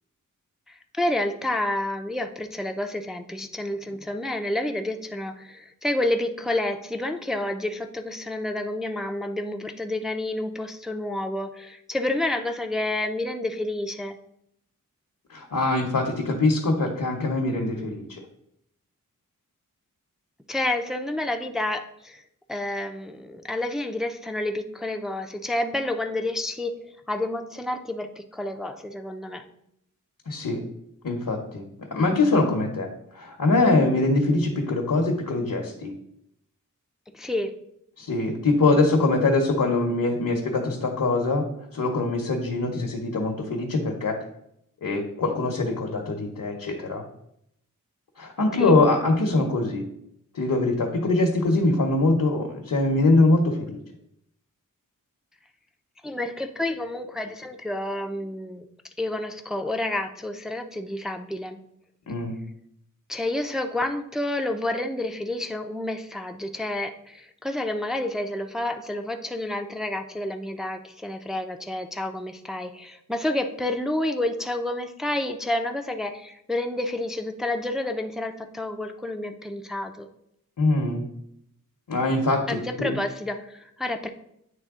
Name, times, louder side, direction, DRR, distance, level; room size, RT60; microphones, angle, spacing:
voice 1, 0.7-14.2 20.5-22.2 22.5-26.8 27.1-29.4 37.1-37.5 48.6-48.7 56.0-58.6 59.0-61.6 63.1-80.1 82.5-84.1, left 1 dB, ahead, 5 dB, 0.4 m, -29 dB
voice 2, 15.3-18.0 30.3-30.6 31.0-31.6 31.9-32.9 33.1-35.9 38.0-41.4 41.7-44.2 44.8-47.0 48.2-49.8 50.3-53.8 62.1-62.4 80.6-81.0 81.9-82.4 82.8-82.9, left 2 dB, 70° left, 1 dB, 0.9 m, -23 dB
9.0 x 3.2 x 3.6 m, 0.75 s
wide cardioid pair, 80°, 33 cm